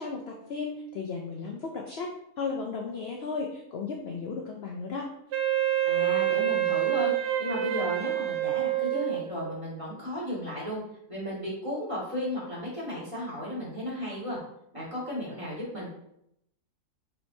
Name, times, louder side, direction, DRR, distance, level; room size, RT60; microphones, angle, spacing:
voice 1, 0.0-2.1 2.4-5.1, left 4 dB, 70° left, 1 dB, 0.6 m, -35 dB
Wind instrument woodwind instrument, 5.3-9.6, right 12 dB, 75° right, 0.6 m, -27 dB
voice 2, 5.8-10.8 11.1-14.4 14.7-15.9, left 1 dB, 20° right, -7 dB, 1.7 m, -34 dB
4.4 x 4.3 x 2.7 m, 0.78 s
omnidirectional pair, 1.7 m